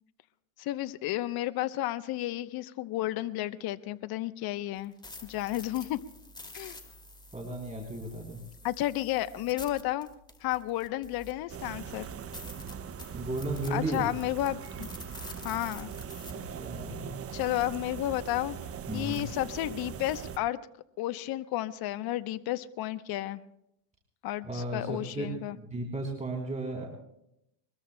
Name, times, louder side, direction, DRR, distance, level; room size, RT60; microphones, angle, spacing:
voice 1, 0.6-4.9 5.2-6.0 6.5-6.8 8.6-10.1 10.4-12.1 13.7-14.9 15.4-15.9 17.3-18.6 18.9-20.6 21.0-23.4 24.2-25.6, left 15 dB, 50° left, 12 dB, 0.9 m, -32 dB
sound 1, 4.8-11.6 12.0-12.1 12.3-16.3, left 1 dB, 10° left, 2.4 m, -48 dB
voice 2, 7.3-8.4 13.1-14.1 16.3-17.2 18.9-19.2 24.4-25.3 25.5-26.9, right 2 dB, 15° right, -1 dB, 3.5 m, -35 dB
sound 2, 11.5-20.4, right 7 dB, 30° right, 0.9 m, -41 dB
23.0 x 21.5 x 2.2 m, 0.80 s
supercardioid pair, 100°, 47 cm